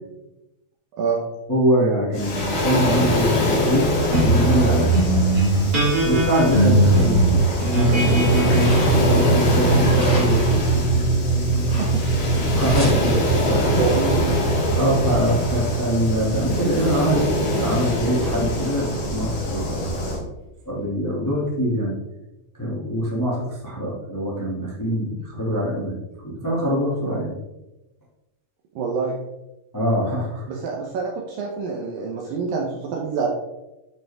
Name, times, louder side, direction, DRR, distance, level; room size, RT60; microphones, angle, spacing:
voice 1, 1.5-3.9 4.2-4.9 5.3-5.6 6.0-10.6 12.5-13.2 13.5-13.7 14.7-17.3 17.6-19.9 20.6-21.9 22.6-27.3 29.7-30.4, equal, 20° left, -5 dB, 0.5 m, -24 dB
Waves surf, 2.1-20.2, left 1 dB, 75° left, 4.4 m, -24 dB
sound 1, 4.1-18.8, right 2 dB, 30° right, 2.1 m, -21 dB
sound 2, 6.9-7.3 8.0-9.2 9.9-10.7 11.5-12.2 12.5-12.9, left 2 dB, 35° left, 2.8 m, -35 dB
voice 2, 13.8-14.3 28.8-29.2 30.5-33.3, right 5 dB, 75° right, -1 dB, 2.2 m, -26 dB
11.5 x 5.5 x 3.6 m, 0.97 s
omnidirectional pair, 5.2 m